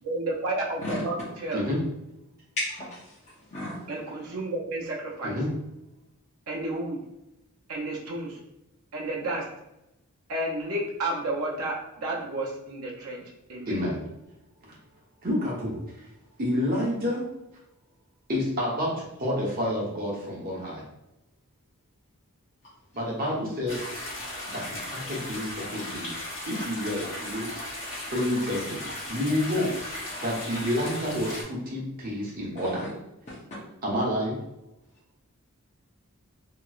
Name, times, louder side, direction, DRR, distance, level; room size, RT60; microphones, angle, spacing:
voice 1, 0.0-1.6 3.9-5.4 6.5-7.0 7.7-8.4 8.9-9.5 10.3-13.8, right 2 dB, 85° right, -3 dB, 0.7 m, -31 dB
voice 2, 2.6-3.1 3.5-3.8 32.6-32.9 33.3-33.4, left 1 dB, 30° left, -10 dB, 0.7 m, -34 dB
voice 3, 13.7-14.0 15.2-16.1 16.4-17.3 18.3-20.8 22.9-23.9 24.4-26.2 26.5-27.5 28.0-28.8 29.1-29.7 30.2-32.8 33.8-34.4, left 1 dB, 40° right, -3 dB, 0.9 m, -29 dB
sound 1, 23.7-31.4, left 1 dB, 60° left, 1.2 m, -36 dB
2.9 x 2.9 x 2.4 m, 0.90 s
head